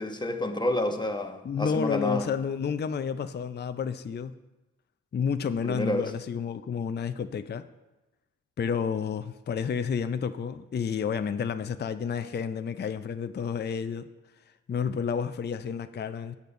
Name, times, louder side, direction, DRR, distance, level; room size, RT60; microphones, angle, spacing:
voice 1, 0.0-2.2 5.6-6.1, left 1 dB, 15° left, 1.1 m, -29 dB
voice 2, 1.4-4.3 5.1-7.7 8.6-14.1 14.7-16.3, left 6 dB, 30° left, 0.5 m, -30 dB
8.2 x 6.7 x 5.3 m
supercardioid pair, 45°, 33 cm